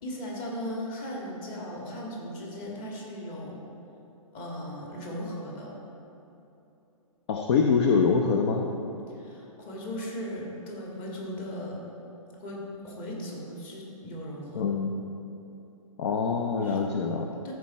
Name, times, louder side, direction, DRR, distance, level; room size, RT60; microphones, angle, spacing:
voice 1, 0.0-3.6 4.3-5.7 9.1-11.8 12.4-14.7 16.6-16.8 17.4-17.5, equal, 30° left, -3 dB, 1.9 m, -37 dB
voice 2, 7.3-8.7 14.5-14.9 16.0-17.3, left 5 dB, 50° left, 3 dB, 0.6 m, -24 dB
13.5 x 4.7 x 4.2 m, 2.9 s
hypercardioid pair, 135°, 18 cm